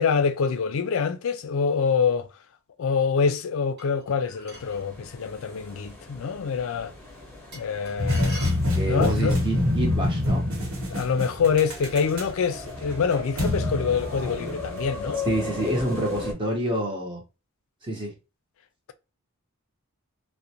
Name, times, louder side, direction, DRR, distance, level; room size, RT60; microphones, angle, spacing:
voice 1, 0.0-2.3 2.8-6.9 7.5-8.5 8.8-9.4 10.9-15.2, left 6 dB, 65° left, 0.4 m, -25 dB
sound 1, 3.8-4.8 7.5-9.2, right 1 dB, 45° right, 1.3 m, -43 dB
sound 2, 4.5-16.3, left 2 dB, 10° left, 0.8 m, -38 dB
sound 3, 8.0-14.8, left 1 dB, 75° right, 1.0 m, -26 dB
voice 2, 8.7-10.5 15.2-17.2 17.8-18.1, right 1 dB, 20° right, 0.7 m, -27 dB
2.4 x 2.1 x 2.7 m
head